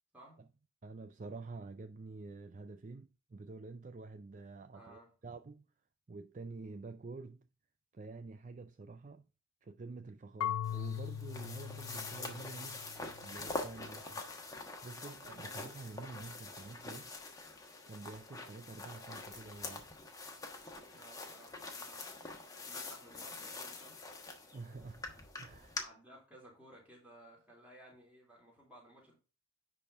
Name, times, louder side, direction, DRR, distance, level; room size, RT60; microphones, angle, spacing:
voice 1, 0.8-5.7 6.1-7.5 7.9-9.3 9.6-12.9 13.2-14.2 14.8-17.1 17.9-20.0 24.5-25.8, right 3 dB, 35° right, 0.4 m, -48 dB
voice 2, 4.7-5.1 13.8-14.2 20.9-22.2 22.6-24.2 25.7-29.2, right 1 dB, 5° right, 3.4 m, -57 dB
Marimba xylophone / Wood, 10.4-13.3, left 10 dB, 85° left, 0.3 m, -40 dB
sound 1, 10.6-25.8, left 3 dB, 15° left, 1.2 m, -45 dB
10.5 x 4.2 x 3.5 m
head